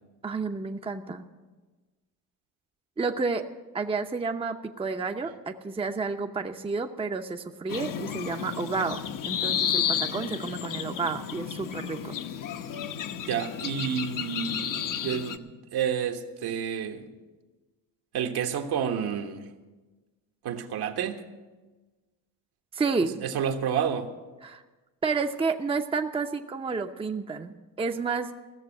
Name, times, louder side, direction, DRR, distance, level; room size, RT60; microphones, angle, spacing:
voice 1, 0.2-1.3 3.0-3.5 3.7-12.2 22.7-23.2 24.4-24.6 25.0-28.3, right 4 dB, 15° right, 5 dB, 0.7 m, -30 dB
sound 1, 7.7-15.4, left 8 dB, 50° left, 0.9 m, -32 dB
voice 2, 13.3-17.1 18.1-19.5 20.4-21.2 23.2-24.1, right 8 dB, 65° right, 4 dB, 1.5 m, -30 dB
15.5 x 6.8 x 9.9 m, 1.3 s
supercardioid pair, 85°, 41 cm